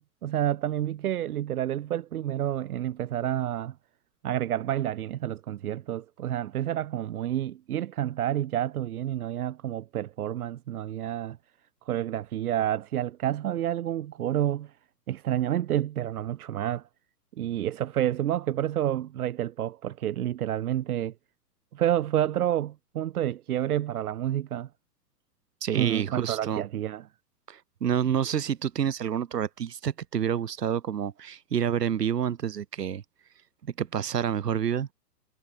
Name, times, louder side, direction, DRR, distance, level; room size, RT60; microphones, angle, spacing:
voice 1, 0.0-3.7 4.2-11.4 11.9-14.8 15.1-16.9 17.4-21.1 21.7-24.7 25.7-27.1, right 12 dB, 65° right, 1.5 m, -29 dB
voice 2, 25.6-26.6 27.5-33.0 33.6-34.9, right 8 dB, 80° right, 3.2 m, -28 dB
hypercardioid pair, 145°, 48 cm